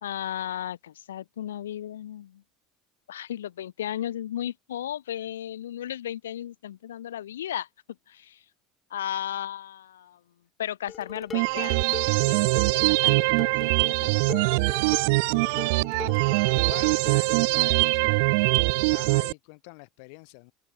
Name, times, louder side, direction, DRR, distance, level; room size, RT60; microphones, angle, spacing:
voice 1, 0.0-2.4 3.1-7.7 8.1-8.4 8.9-10.2 10.6-13.7 14.0-14.7 15.0-15.1, left 11 dB, 85° left, 0.8 m, -35 dB
Dishes pots and pans, 10.9-17.5, left 7 dB, 35° left, 1.0 m, -41 dB
sound 1, 11.3-19.3, right 29 dB, 70° right, 0.6 m, -23 dB
voice 2, 16.5-18.3 18.7-20.5, left 37 dB, 65° left, 1.4 m, -45 dB
open air
hypercardioid pair, 75°, 0 cm